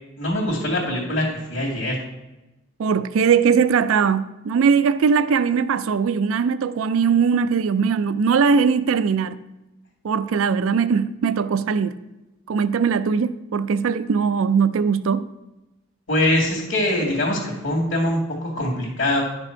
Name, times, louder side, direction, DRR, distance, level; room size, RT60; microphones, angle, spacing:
voice 1, 0.2-2.0 16.1-19.2, left 1 dB, 60° left, -6 dB, 2.0 m, -23 dB
voice 2, 2.8-9.4 10.0-12.0 12.5-15.3, right 6 dB, 70° right, 14 dB, 0.4 m, -20 dB
11.0 x 6.1 x 4.4 m, 1.0 s
head